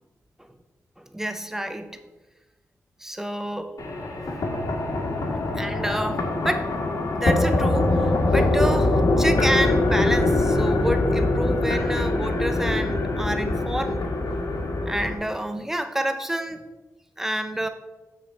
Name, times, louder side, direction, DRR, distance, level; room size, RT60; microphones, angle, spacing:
voice 1, 1.0-2.0 3.0-3.7 5.6-6.7 7.1-14.0 14.9-16.6 17.2-17.7, right 1 dB, 5° right, 8 dB, 0.7 m, -28 dB
sound 1, 3.8-15.2, left 2 dB, 65° left, 1.6 m, -23 dB
7.1 x 6.2 x 4.3 m, 1.1 s
cardioid pair, 80°, 6 cm